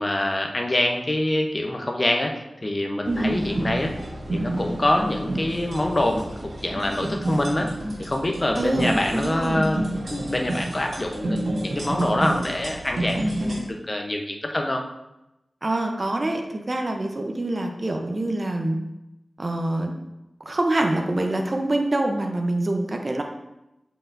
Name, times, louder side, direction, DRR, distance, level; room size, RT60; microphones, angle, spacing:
voice 1, 0.0-2.3 2.6-3.9 4.3-6.2 6.6-7.7 8.0-9.8 10.1-14.8, left 1 dB, 35° left, 2 dB, 0.9 m, -25 dB
sound 1, 3.0-13.6, right 1 dB, 75° right, 1.8 m, -30 dB
voice 2, 3.1-3.4 8.5-9.6 15.6-18.8 19.4-19.9 20.4-23.2, right 1 dB, 45° right, 3 dB, 0.8 m, -25 dB
7.5 x 4.7 x 2.7 m, 0.92 s
wide cardioid pair, 55°, 0 cm